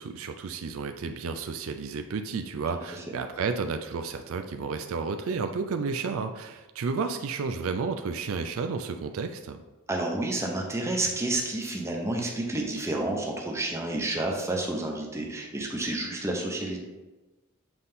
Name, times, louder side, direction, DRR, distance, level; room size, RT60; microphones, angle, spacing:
voice 1, 0.0-9.6, right 4 dB, 65° right, 7 dB, 0.4 m, -32 dB
voice 2, 9.9-16.8, right 2 dB, 15° right, 0 dB, 0.9 m, -30 dB
7.7 x 4.0 x 3.6 m, 1.1 s
head